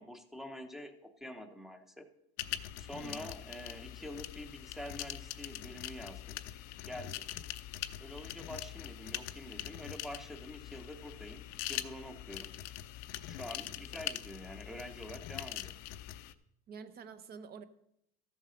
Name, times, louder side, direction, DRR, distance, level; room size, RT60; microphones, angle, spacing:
voice 1, 0.0-2.1 2.8-6.4 6.8-7.3 8.0-12.5 13.3-15.8, left 1 dB, ahead, 0.8 m, -46 dB
sound 1, 2.4-16.3, left 14 dB, 60° left, 0.6 m, -43 dB
voice 2, 16.7-17.6, right 6 dB, 30° right, 0.8 m, -48 dB
13.5 x 7.2 x 5.2 m
cardioid pair, 145°, 30 cm